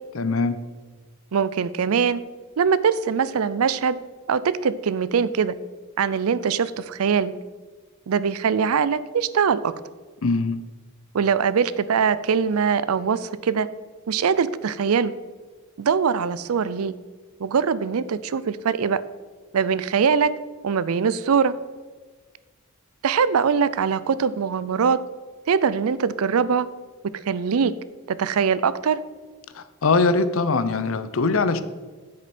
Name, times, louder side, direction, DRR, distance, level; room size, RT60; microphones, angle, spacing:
voice 1, 0.1-0.6 10.2-10.6 29.5-31.6, left 3 dB, 65° left, 12 dB, 0.6 m, -22 dB
voice 2, 1.3-2.2 2.6-4.0 4.3-5.5 6.0-7.3 8.1-9.7 11.1-13.7 14.1-15.1 15.8-16.9 17.4-19.0 19.5-20.3 20.6-21.5 23.0-25.0 25.5-26.7 27.3-27.7 28.1-29.0, right 6 dB, 85° right, 16 dB, 0.5 m, -22 dB
9.7 x 8.0 x 4.3 m, 1.4 s
head